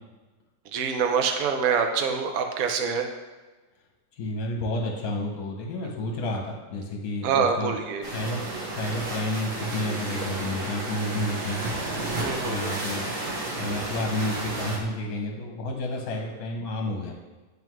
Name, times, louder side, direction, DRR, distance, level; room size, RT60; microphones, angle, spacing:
voice 1, 0.7-3.1 7.2-8.1 12.1-12.8, right 6 dB, 65° right, 5 dB, 0.8 m, -25 dB
voice 2, 4.2-7.7 8.1-8.4 8.8-11.6 12.4-13.0 13.6-17.1, left 1 dB, 60° left, 1 dB, 1.2 m, -30 dB
sound 1, 8.0-14.8, right 2 dB, 50° right, 1.2 m, -32 dB
9.1 x 3.5 x 3.1 m, 1.2 s
omnidirectional pair, 2.0 m